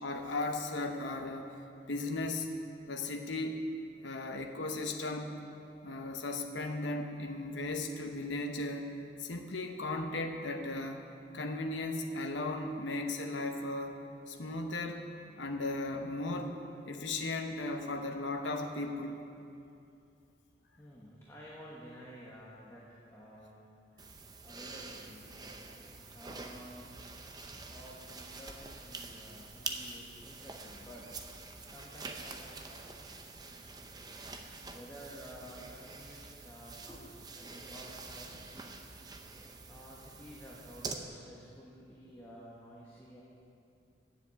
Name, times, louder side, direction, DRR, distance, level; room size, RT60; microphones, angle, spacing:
voice 1, 0.0-1.5 1.9-2.5 2.9-3.6 4.0-5.3 5.8-8.9 9.2-11.0 11.3-14.0 14.3-15.0 15.4-16.6 16.9-19.2, left 2 dB, 85° left, 3 dB, 0.9 m, -36 dB
voice 2, 20.8-23.6 24.4-25.3 26.1-27.0 27.6-32.9 33.8-33.9 34.7-38.9 39.7-43.2, equal, 15° left, -6 dB, 1.2 m, -52 dB
sound 1, 24.0-40.9, right 3 dB, 20° right, 0.6 m, -46 dB
10.0 x 7.6 x 8.2 m, 2.6 s
head